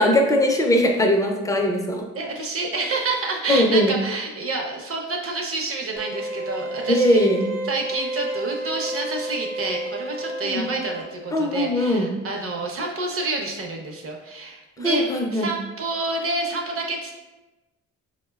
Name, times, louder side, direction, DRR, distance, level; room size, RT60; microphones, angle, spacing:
voice 1, 0.0-2.0 3.5-4.0 6.9-7.6 10.4-10.6 11.3-12.1 14.8-15.6, left 1 dB, 10° left, 2 dB, 0.4 m, -20 dB
voice 2, 2.1-7.3 7.6-15.1 15.3-17.1, right 3 dB, 50° right, 1 dB, 0.6 m, -28 dB
sound 1, 6.0-11.0, right 1 dB, 80° right, 0.9 m, -31 dB
4.1 x 2.1 x 2.2 m, 1.1 s
cardioid pair, 90°, 30 cm